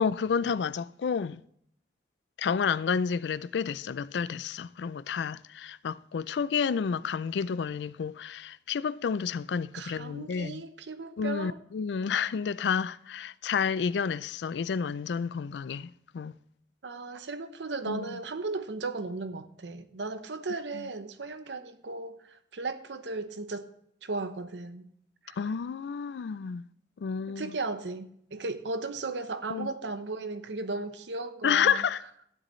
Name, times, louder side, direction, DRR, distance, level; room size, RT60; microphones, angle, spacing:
voice 1, 0.0-1.4 2.4-10.6 11.2-16.3 17.9-18.2 20.7-20.9 25.3-26.6 27.0-27.5 29.5-29.7 31.4-32.0, left 6 dB, 80° left, 0.4 m, -30 dB
voice 2, 9.7-11.6 16.8-23.7 24.0-24.9 25.2-25.4 27.3-31.8, right 3 dB, 90° right, 0.8 m, -36 dB
12.5 x 10.0 x 3.1 m
head